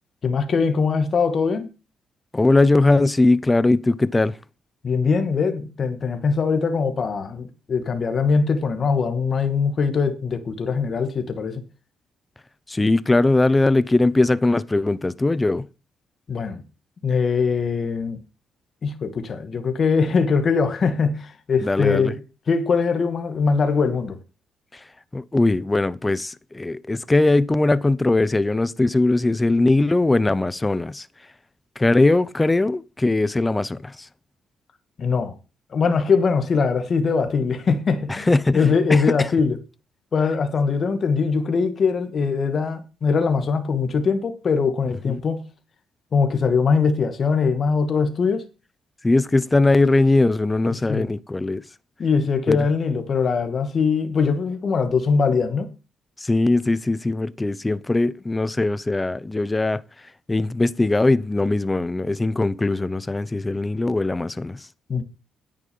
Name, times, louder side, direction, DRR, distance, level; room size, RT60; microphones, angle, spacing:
voice 1, 0.2-1.7 4.8-11.6 16.3-16.6 17.0-18.2 18.8-24.2 35.0-35.4 35.7-38.3 38.5-39.6 40.1-45.5 46.1-48.4 50.6-51.1 52.0-55.7 64.9-65.0, left 5 dB, 45° left, 2.3 m, -22 dB
voice 2, 2.3-4.4 12.7-15.7 21.6-22.1 25.1-31.1 31.8-34.1 38.1-39.3 45.1-45.2 49.0-51.6 52.5-52.7 56.2-59.8 60.3-64.7, left 2 dB, 15° left, 0.8 m, -20 dB
10.5 x 9.0 x 5.5 m
cardioid pair, 90°, 0 cm